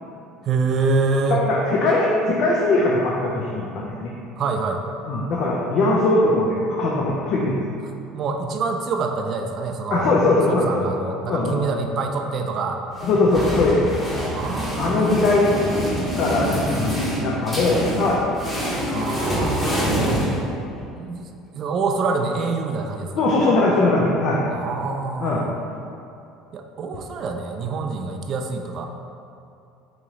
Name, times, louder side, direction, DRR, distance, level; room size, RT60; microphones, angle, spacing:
voice 1, 0.4-1.4 4.4-4.8 8.1-10.1 10.5-12.8 14.3-15.2 18.9-20.3 21.0-23.1 24.5-25.5 26.5-28.9, right 4 dB, 50° right, 4 dB, 0.3 m, -26 dB
voice 2, 1.3-4.1 5.1-7.6 9.9-10.8 11.3-11.6 13.0-13.9 14.8-15.6 16.2-18.2 18.9-19.4 23.2-24.4 25.2-25.5, left 2 dB, 55° left, -4 dB, 0.5 m, -20 dB
sound 1, 13.0-20.9, equal, 10° left, 1.1 m, -26 dB
3.0 x 3.0 x 3.7 m, 2.6 s
supercardioid pair, 90°, 0 cm